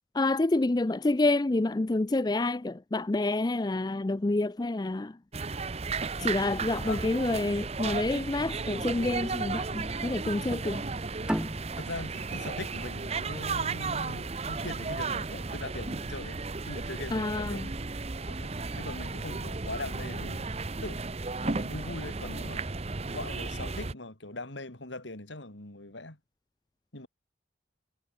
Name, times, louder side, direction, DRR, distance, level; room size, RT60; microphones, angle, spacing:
voice 1, 0.1-5.2 6.2-10.9 17.1-17.7, left 2 dB, 20° left, 0.4 m, -28 dB
sound 1, 5.3-23.9, right 4 dB, 35° right, 0.8 m, -34 dB
sound 2, 11.3-14.5, equal, 5° right, 2.5 m, -36 dB
voice 2, 11.8-17.7 18.4-20.6 20.8-21.0 21.4-22.6 23.1-26.2 26.9-27.1, left 2 dB, 80° left, 3.5 m, -41 dB
head